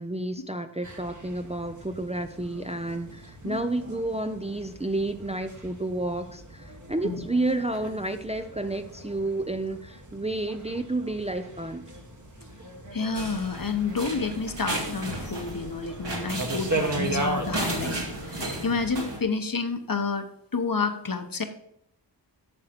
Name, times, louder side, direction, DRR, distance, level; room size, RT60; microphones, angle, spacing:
voice 1, 0.0-11.9, right 2 dB, 15° right, 7 dB, 0.5 m, -30 dB
sound 1, 0.8-17.7, right 2 dB, 45° right, 1.5 m, -38 dB
voice 2, 12.9-18.0 18.3-20.3 20.5-21.4, left 4 dB, 50° left, 7 dB, 1.0 m, -29 dB
sound 2, 13.1-19.2, right 1 dB, 75° right, 1.9 m, -34 dB
8.7 x 6.5 x 4.4 m, 0.74 s
wide cardioid pair, 55°, 43 cm